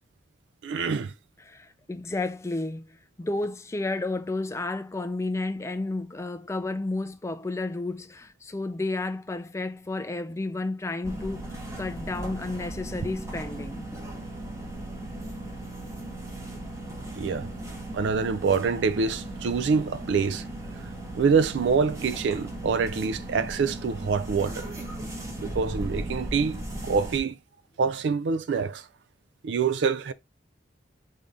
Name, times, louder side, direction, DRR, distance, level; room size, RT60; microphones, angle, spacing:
voice 1, 0.6-1.1 17.2-17.5 17.9-20.4 21.1-24.7 25.4-27.4 27.8-28.9 29.4-30.1, right 5 dB, 70° right, 0.4 m, -26 dB
voice 2, 1.4-13.9, left 2 dB, 15° left, 0.4 m, -32 dB
sound 1, 11.0-27.2, right 1 dB, 15° right, 1.0 m, -37 dB
5.0 x 2.7 x 3.5 m
head